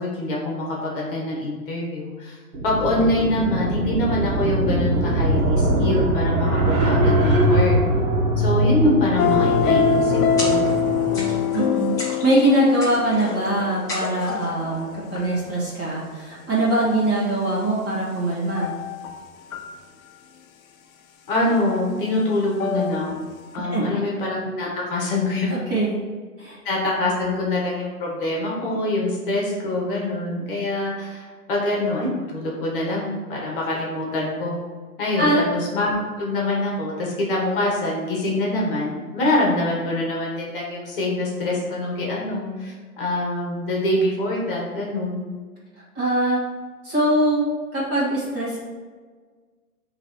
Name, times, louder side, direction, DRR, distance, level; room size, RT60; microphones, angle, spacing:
voice 1, 0.0-2.3 2.6-7.8 8.4-10.7 21.3-23.2 23.5-25.5 26.6-34.6 35.0-45.3, left 1 dB, 35° left, -3 dB, 1.7 m, -25 dB
sound 1, 2.5-11.3, right 1 dB, 50° right, 1.6 m, -22 dB
sound 2, 9.2-15.4 18.6-19.2 19.5-19.8 22.6-23.2 23.5-23.6, left 6 dB, 65° left, 0.7 m, -24 dB
sound 3, 10.4-10.9 11.1-11.6 12.0-12.5 12.8-13.5 13.9-14.5, left 1 dB, 5° left, 1.2 m, -33 dB
voice 2, 11.5-18.7 23.6-24.0 25.5-26.0 26.4-26.6 35.2-35.4 45.9-46.4 46.8-47.4 47.7-48.6, right 1 dB, 20° right, -7 dB, 1.7 m, -22 dB
8.2 x 3.3 x 4.5 m, 1.5 s
hypercardioid pair, 150°, 45 cm